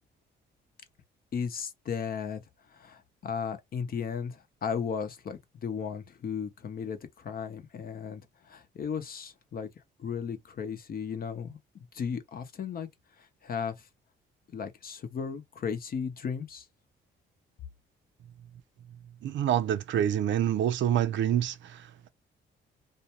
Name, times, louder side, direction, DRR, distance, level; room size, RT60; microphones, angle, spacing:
voice 1, 1.3-2.4 2.7-9.7 10.0-11.6 11.9-12.9 13.4-13.7 14.5-16.7, left 6 dB, 50° left, 0.7 m, -35 dB
voice 2, 19.2-22.1, right 10 dB, 70° right, 0.5 m, -27 dB
2.6 x 2.2 x 2.8 m
cardioid pair, 90°, 20 cm